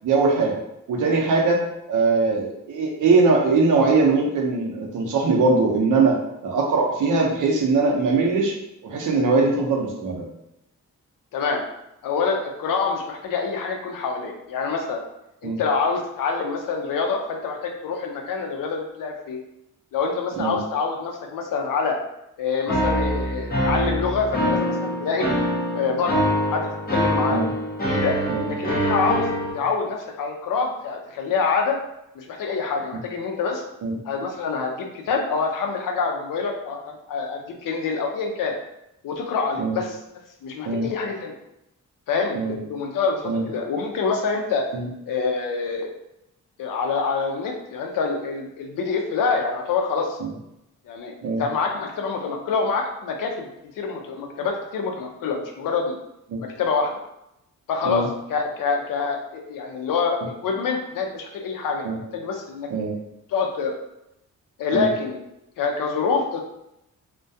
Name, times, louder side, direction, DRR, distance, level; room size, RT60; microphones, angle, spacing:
voice 1, 0.0-0.6 0.9-1.6 1.9-6.2 6.4-8.5 8.8-10.3 15.4-15.6 20.4-20.6 27.3-27.5 28.3-28.5 33.8-34.0 39.6-39.8 40.6-40.9 42.3-42.5 43.3-43.4 44.7-44.9 51.2-51.4 56.3-56.4 57.8-58.1 61.8-62.0 62.7-62.9 64.7-64.9, right 3 dB, 70° right, 0 dB, 0.6 m, -21 dB
voice 2, 11.3-11.6 12.0-15.0 15.4-19.4 19.9-22.0 22.4-25.3 25.7-27.4 27.9-28.1 28.5-31.8 32.1-33.6 34.0-38.5 39.0-40.0 40.4-41.4 42.1-44.6 45.1-46.0 46.6-50.2 50.9-53.5 53.8-56.0 56.4-56.9 57.7-61.9 62.1-62.7 63.3-63.8 64.6-65.2 65.6-66.4, left 5 dB, 85° left, 2 dB, 0.5 m, -26 dB
sound 1, 22.7-29.5, equal, 30° left, 0.6 m, -24 dB
2.2 x 2.2 x 2.6 m, 0.85 s
wide cardioid pair, 165°, 32 cm